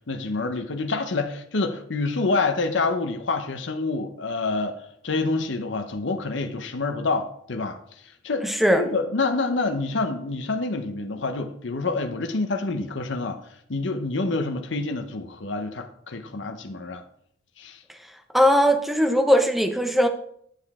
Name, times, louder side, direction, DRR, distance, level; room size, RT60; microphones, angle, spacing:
voice 1, 0.1-4.8 5.0-7.8 8.2-8.5 8.8-13.4 13.7-17.0 17.6-17.8, left 3 dB, 70° left, 0.8 m, -27 dB
voice 2, 8.4-8.8 18.3-20.1, equal, ahead, 0.7 m, -19 dB
9.2 x 6.8 x 3.6 m
head